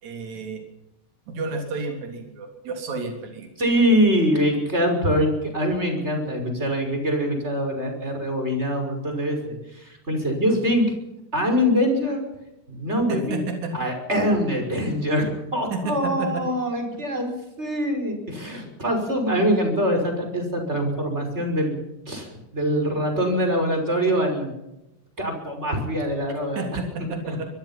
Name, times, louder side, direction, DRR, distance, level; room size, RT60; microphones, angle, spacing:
voice 1, 0.0-0.6 1.3-3.5 13.1-13.7 14.2-14.4 15.7-16.4 17.2-17.3 26.6-27.5, right 3 dB, 60° right, 3 dB, 4.6 m, -31 dB
voice 2, 3.6-11.0 11.3-12.2 12.7-13.4 13.7-21.8 22.1-24.5 25.2-26.7 27.2-27.4, equal, 20° right, 4 dB, 6.0 m, -24 dB
24.5 x 22.0 x 5.9 m, 0.92 s
omnidirectional pair, 3.7 m